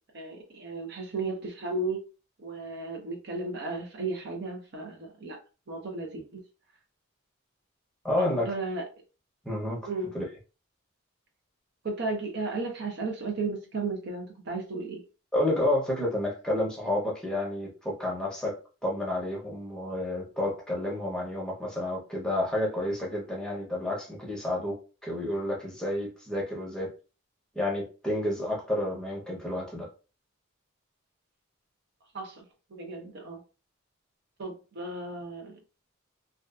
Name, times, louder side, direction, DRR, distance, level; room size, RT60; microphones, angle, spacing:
voice 1, 0.1-2.0 2.4-5.4 5.7-6.4 8.2-8.9 9.9-10.1 11.8-15.0 32.1-32.4 32.7-33.4 34.4-35.6, right 3 dB, 55° right, 0.6 m, -34 dB
voice 2, 8.0-8.5 9.4-9.8 10.1-10.3 15.3-24.8 25.0-26.9 27.5-29.9, left 1 dB, 5° left, 0.7 m, -30 dB
2.4 x 2.3 x 2.3 m
head